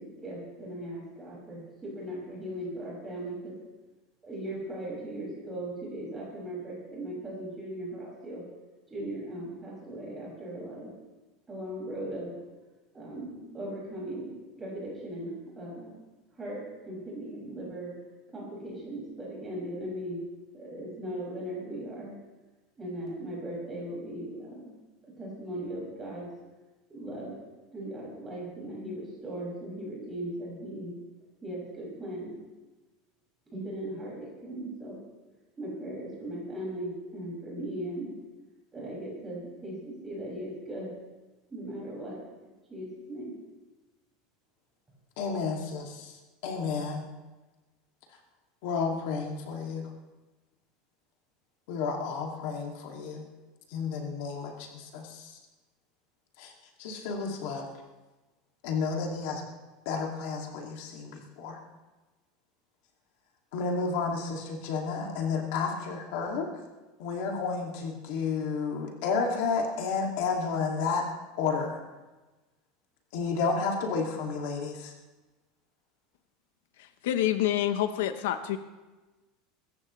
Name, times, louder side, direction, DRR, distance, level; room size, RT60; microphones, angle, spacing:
voice 1, 0.0-3.5 4.2-8.4 8.9-10.9 11.5-12.3 12.9-15.3 15.6-15.9 16.3-17.9 18.3-20.2 20.5-22.1 22.8-24.7 25.2-26.3 26.9-27.4 27.7-30.9 31.4-32.3 33.5-35.0 35.6-38.2 38.7-40.9 41.5-42.2 42.7-43.3, right 1 dB, 15° right, -5 dB, 6.2 m, -38 dB
voice 2, 45.2-46.2 46.4-47.1 48.6-49.8 51.7-53.2 53.7-55.4 56.4-56.5 56.8-57.7 58.6-59.4 59.9-61.6 63.5-66.5 67.0-71.1 71.4-71.8 73.1-74.9, left 5 dB, 60° left, 0 dB, 2.4 m, -31 dB
voice 3, 77.0-78.6, left 12 dB, 85° left, 9 dB, 1.0 m, -27 dB
24.0 x 14.5 x 3.3 m, 1.2 s
supercardioid pair, 175°, 0 cm